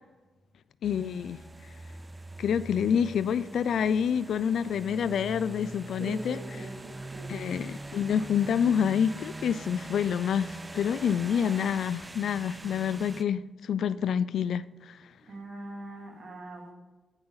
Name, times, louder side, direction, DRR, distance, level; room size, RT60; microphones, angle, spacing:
voice 1, 0.8-1.4 2.4-6.4 7.3-15.0, left 8 dB, 70° left, 0.3 m, -27 dB
sound 1, 0.8-13.2, right 2 dB, 15° right, 0.4 m, -43 dB
voice 2, 6.0-7.4 15.2-16.7, right 2 dB, 50° right, 2.6 m, -42 dB
14.5 x 8.1 x 3.9 m
wide cardioid pair, 150°, 0 cm